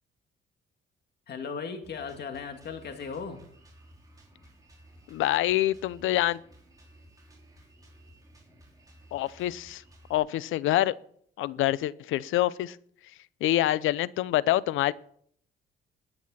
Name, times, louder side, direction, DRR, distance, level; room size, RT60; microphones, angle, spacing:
voice 1, 1.3-3.4, left 5 dB, 55° left, 5 dB, 2.5 m, -37 dB
Drum kit, 1.8-10.2, right 1 dB, 20° right, 4.9 m, -55 dB
voice 2, 5.1-6.4 9.1-9.8 10.1-10.9 11.4-12.8 13.4-14.9, left 14 dB, 85° left, 20 dB, 0.6 m, -26 dB
21.0 x 9.4 x 4.2 m, 0.63 s
cardioid pair, 90°, 20 cm